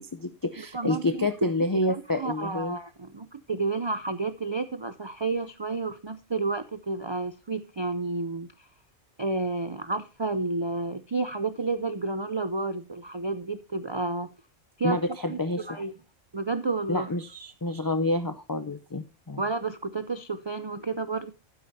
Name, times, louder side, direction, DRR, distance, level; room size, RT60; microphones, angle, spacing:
voice 1, 0.0-2.8 14.8-15.8 16.9-19.4, left 2 dB, 30° left, 0.4 m, -28 dB
voice 2, 0.7-1.3 1.9-8.5 9.2-14.3 14.8-15.0 15.3-15.9 16.3-17.1 19.4-21.3, right 3 dB, 40° right, 0.4 m, -31 dB
12.0 x 9.9 x 2.7 m
omnidirectional pair, 1.3 m